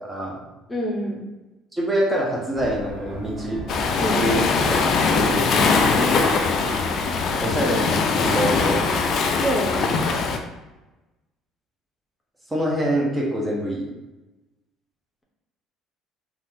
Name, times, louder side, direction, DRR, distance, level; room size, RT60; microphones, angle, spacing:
voice 1, 0.0-0.4 1.7-3.6 4.2-6.4 7.4-8.9 12.5-13.9, equal, 15° right, -2 dB, 0.9 m, -25 dB
voice 2, 0.7-1.2 4.0-4.2 9.4-9.9, equal, 15° left, -3 dB, 0.8 m, -26 dB
sound 1, 2.5-7.8, right 1 dB, 70° right, 0.7 m, -38 dB
Waves surf, 3.7-10.4, left 4 dB, 55° left, 0.4 m, -21 dB
3.1 x 2.4 x 2.7 m, 1.1 s
hypercardioid pair, 65°, 0 cm